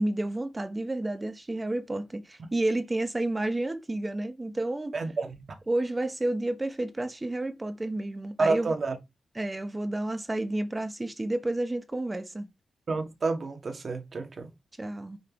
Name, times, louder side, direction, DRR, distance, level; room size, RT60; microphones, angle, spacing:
voice 1, 0.0-4.9 5.7-8.7 9.3-12.5 14.8-15.2, right 1 dB, 20° right, 0.9 m, -30 dB
voice 2, 4.9-5.6 8.4-9.0 12.9-14.5, right 3 dB, 50° right, 1.8 m, -29 dB
5.9 x 5.2 x 5.1 m
wide cardioid pair, 100°, 0 cm